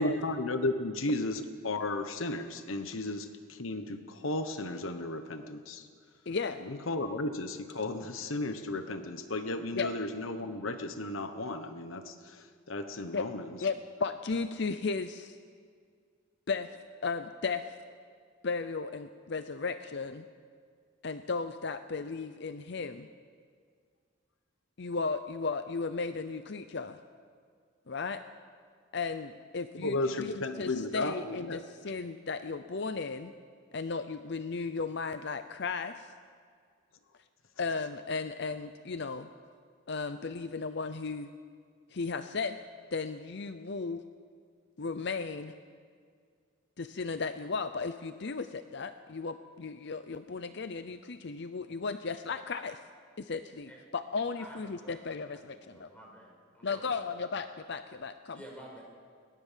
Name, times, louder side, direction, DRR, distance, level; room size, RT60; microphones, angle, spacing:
voice 1, 0.0-5.9 6.6-13.6 29.7-31.6, left 2 dB, 80° left, 8 dB, 1.1 m, -34 dB
voice 2, 6.3-6.6 9.7-9.9 13.1-13.3 13.6-15.4 16.5-16.7 17.0-17.7 18.4-20.3 21.0-23.1 24.8-27.0 27.9-28.2 28.9-33.3 33.7-36.1 37.6-39.3 39.9-41.3 41.9-42.6 42.9-44.0 44.8-45.5 46.8-52.8 53.2-55.9 56.6-58.4, left 4 dB, 55° left, 10 dB, 0.7 m, -35 dB
voice 3, 54.8-57.2 58.3-58.8, right 1 dB, 5° left, -2 dB, 6.0 m, -51 dB
21.5 x 18.5 x 7.5 m, 2.1 s
head